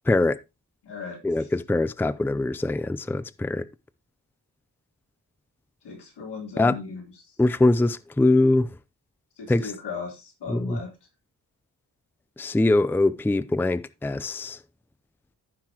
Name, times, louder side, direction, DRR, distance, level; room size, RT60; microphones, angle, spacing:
voice 1, 0.1-0.4 1.2-3.7 6.6-6.8 7.4-8.8 9.5-9.7 10.5-10.8 12.4-14.6, left 2 dB, 5° left, 0.5 m, -23 dB
voice 2, 0.8-1.2 5.8-7.1 9.4-10.9, left 5 dB, 90° left, 3.8 m, -36 dB
14.5 x 5.8 x 3.0 m
wide cardioid pair, 115°, 40 cm